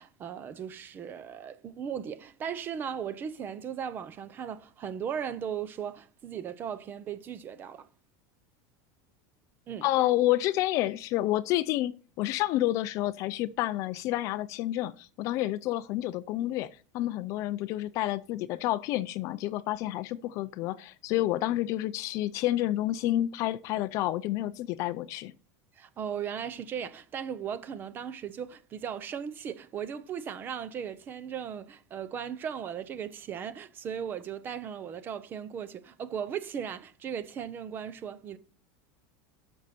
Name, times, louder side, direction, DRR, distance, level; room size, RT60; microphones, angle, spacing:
voice 1, 0.0-7.9 9.7-9.8 25.8-38.4, right 8 dB, 20° right, 0.6 m, -37 dB
voice 2, 9.8-25.3, left 15 dB, 35° left, 0.4 m, -29 dB
12.5 x 6.3 x 4.3 m
supercardioid pair, 180°, 10 cm